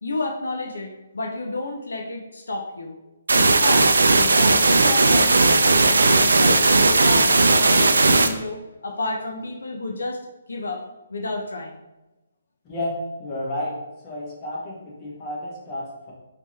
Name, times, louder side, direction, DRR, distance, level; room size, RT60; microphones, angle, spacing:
voice 1, 0.0-2.9 3.3-10.2 10.5-10.8 11.1-11.8, left 2 dB, 80° left, 2 dB, 0.5 m, -31 dB
sound 1, 3.3-8.3, right 3 dB, 80° right, 0.3 m, -17 dB
voice 2, 12.6-13.8 14.0-16.1, left 1 dB, 25° left, -5 dB, 1.2 m, -31 dB
3.5 x 2.8 x 3.1 m, 1.0 s
hypercardioid pair, 145°, 0 cm